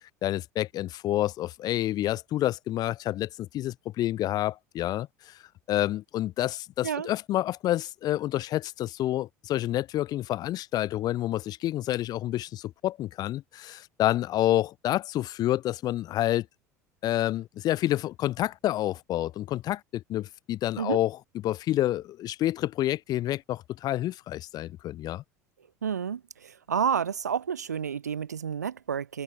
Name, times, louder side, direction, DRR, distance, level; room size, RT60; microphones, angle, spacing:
voice 1, 0.2-5.4 5.7-16.5 17.0-21.2 21.4-25.2, left 14 dB, 50° left, 2.7 m, -28 dB
voice 2, 25.8-29.2, right 7 dB, 85° right, 1.0 m, -30 dB
figure-of-eight pair, 70°, 9 cm